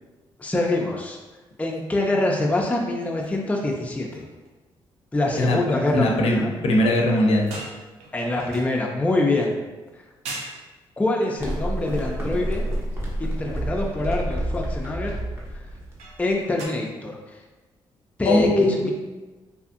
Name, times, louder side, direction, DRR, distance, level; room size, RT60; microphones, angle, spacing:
voice 1, 0.4-1.2 1.6-4.2 5.1-6.5 8.1-9.6 11.0-12.6 13.2-15.1 16.2-17.2 18.2-18.9, left 2 dB, 15° left, -1 dB, 0.4 m, -25 dB
sound 1, 3.2-3.4 3.7-3.9 4.1-4.5 7.0-9.3 9.9-10.0 10.2-10.6 11.7-12.9 13.4-13.6 16.0-16.7, right 2 dB, 85° right, 0.5 m, -41 dB
voice 2, 5.9-7.5 18.3-18.9, left 1 dB, 60° left, 0 dB, 0.5 m, -20 dB
sound 2, 11.4-16.4, right 1 dB, 20° right, 0.8 m, -29 dB
2.7 x 2.4 x 2.5 m, 1.2 s
supercardioid pair, 55°, 11 cm